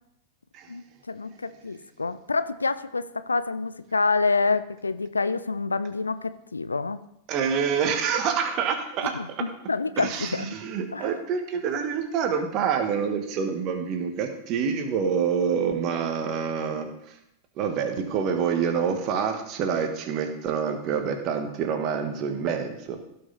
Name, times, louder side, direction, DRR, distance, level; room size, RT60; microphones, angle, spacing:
voice 1, 0.7-7.0 9.2-10.5 10.9-11.0, left 4 dB, 80° left, 13 dB, 0.5 m, -27 dB
voice 2, 7.3-9.5 10.0-17.2 17.6-23.0, right 6 dB, 40° right, 6 dB, 1.5 m, -27 dB
16.5 x 5.8 x 4.1 m, 0.81 s
figure-of-eight pair, 90°, 0 cm